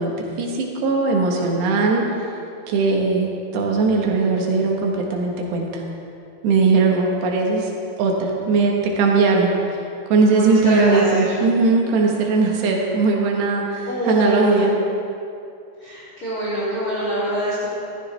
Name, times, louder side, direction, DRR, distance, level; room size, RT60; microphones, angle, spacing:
voice 1, 0.0-2.0 2.7-5.8 6.4-7.7 8.0-9.5 10.1-14.8, right 4 dB, 85° right, 0 dB, 3.6 m, -19 dB
voice 2, 10.3-11.3 13.8-14.7 15.8-17.7, right 1 dB, 35° left, -11 dB, 3.2 m, -24 dB
15.0 x 13.5 x 3.4 m, 2.6 s
omnidirectional pair, 4.7 m